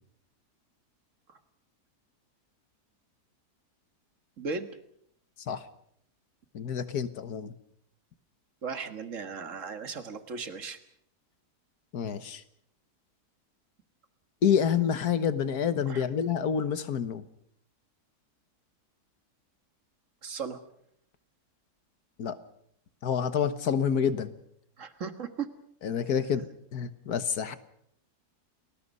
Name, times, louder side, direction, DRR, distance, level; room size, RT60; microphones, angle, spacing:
voice 1, 4.4-4.7 8.6-10.8 15.9-16.0 20.2-20.6 24.8-25.5, right 5 dB, 55° right, 8 dB, 2.0 m, -36 dB
voice 2, 6.5-7.5 11.9-12.4 14.4-17.3 22.2-22.4 23.0-24.3 25.8-27.6, left 7 dB, 75° left, 12 dB, 1.8 m, -28 dB
29.5 x 20.5 x 5.5 m, 0.72 s
omnidirectional pair, 1.7 m